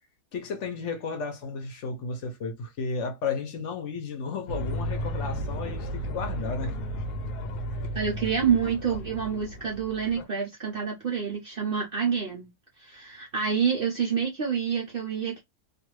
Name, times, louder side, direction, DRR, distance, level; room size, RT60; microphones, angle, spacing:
voice 1, 0.3-6.7, left 4 dB, 60° left, 0.9 m, -33 dB
sound 1, 4.5-10.2, equal, 90° left, 1.2 m, -33 dB
voice 2, 7.9-12.5 12.8-15.4, right 7 dB, 60° right, 0.6 m, -27 dB
2.5 x 2.4 x 3.0 m
omnidirectional pair, 1.7 m